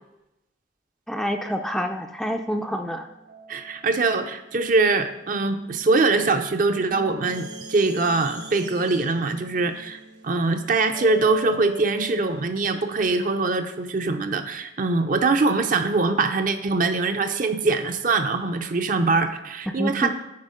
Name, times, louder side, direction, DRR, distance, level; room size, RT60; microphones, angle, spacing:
voice 1, 1.1-3.1 19.8-20.1, equal, ahead, 5 dB, 0.3 m, -27 dB
sound 1, 2.8-5.6 6.1-12.3, left 1 dB, 85° right, 3.2 m, -43 dB
voice 2, 3.5-20.1, right 3 dB, 45° right, 8 dB, 0.6 m, -23 dB
sound 2, 7.3-11.8, right 4 dB, 65° right, 1.3 m, -45 dB
9.6 x 4.4 x 5.0 m, 0.92 s
head